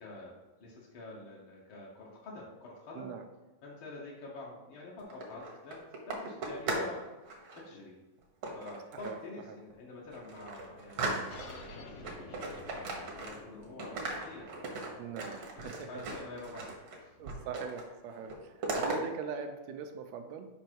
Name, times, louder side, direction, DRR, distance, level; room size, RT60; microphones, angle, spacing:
voice 1, 0.0-3.1 3.6-8.0 8.5-12.4 13.2-17.3, left 2 dB, 65° left, -4 dB, 1.3 m, -47 dB
sound 1, 5.0-7.0 7.2-7.6 8.4-9.2 9.7-9.8 10.1-11.7 12.0-13.5 13.8-17.0 17.3-17.9 18.1-19.0, right 3 dB, 60° right, 1.3 m, -38 dB
sound 2, 11.3-16.4, left 3 dB, 90° left, 2.6 m, -51 dB
voice 2, 15.0-15.9 17.2-20.5, right 6 dB, 80° right, 6 dB, 1.6 m, -41 dB
6.6 x 5.3 x 4.5 m, 1.1 s
omnidirectional pair, 3.8 m